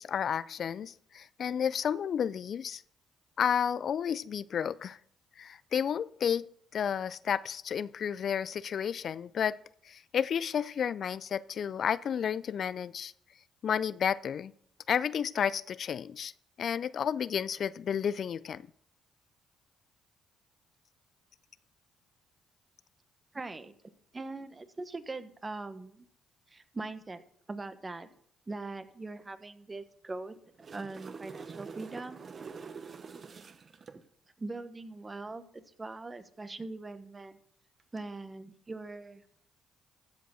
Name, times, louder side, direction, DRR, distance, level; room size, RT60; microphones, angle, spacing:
voice 1, 0.0-2.8 3.4-5.0 5.4-6.4 6.7-9.6 9.9-13.1 13.6-14.5 14.9-16.3 16.6-18.6, left 8 dB, 60° left, 0.4 m, -31 dB
voice 2, 23.3-23.7 24.1-26.0 26.5-27.2 27.5-28.1 28.5-30.3 30.7-32.2 34.4-37.4 37.9-39.2, right 3 dB, 25° right, 1.2 m, -41 dB
sound 1, 30.4-34.0 37.8-38.0, right 5 dB, 45° right, 1.1 m, -45 dB
14.5 x 5.1 x 6.3 m
supercardioid pair, 65°, 0 cm